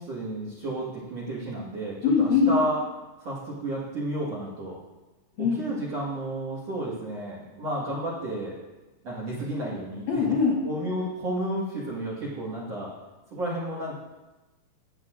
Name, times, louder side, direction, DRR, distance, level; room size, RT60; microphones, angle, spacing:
voice 1, 0.0-2.8 3.2-4.8 5.4-8.5 9.0-10.2 10.6-12.9 13.3-13.9, right 1 dB, 55° right, -6 dB, 1.8 m, -32 dB
voice 2, 2.0-2.5 5.4-5.6 10.1-10.6, left 5 dB, 90° left, -3 dB, 1.6 m, -22 dB
15.5 x 8.1 x 2.5 m, 1.1 s
omnidirectional pair, 5.2 m